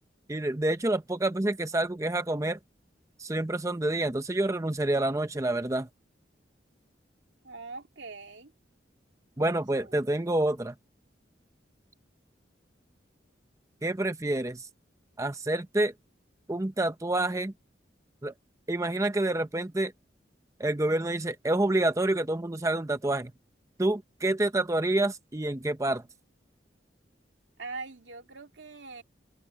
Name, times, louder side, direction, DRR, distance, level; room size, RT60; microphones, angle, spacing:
voice 1, 0.3-2.6 3.2-5.9 9.4-10.8 13.8-14.7 15.2-15.9 16.5-17.5 18.2-18.3 18.7-19.9 20.6-23.3 23.8-26.1, right 1 dB, 15° right, 0.6 m, -28 dB
voice 2, 7.4-8.5 27.6-29.0, right 3 dB, 85° right, 2.5 m, -42 dB
head